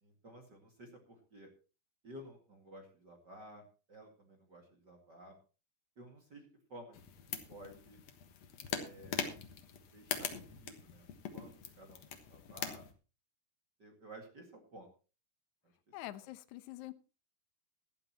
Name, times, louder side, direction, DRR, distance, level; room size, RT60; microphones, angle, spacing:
voice 1, 0.0-1.5 2.0-5.4 6.0-7.1 7.5-8.0 8.7-9.3 9.9-12.9 13.8-14.9 15.6-15.7, right 1 dB, 35° right, 2 dB, 2.0 m, -54 dB
sound 1, 6.9-12.9, left 7 dB, 60° left, 2.0 m, -42 dB
voice 2, 15.9-16.9, left 16 dB, 80° left, 11 dB, 1.7 m, -45 dB
17.5 x 12.0 x 3.0 m, 0.34 s
omnidirectional pair, 4.6 m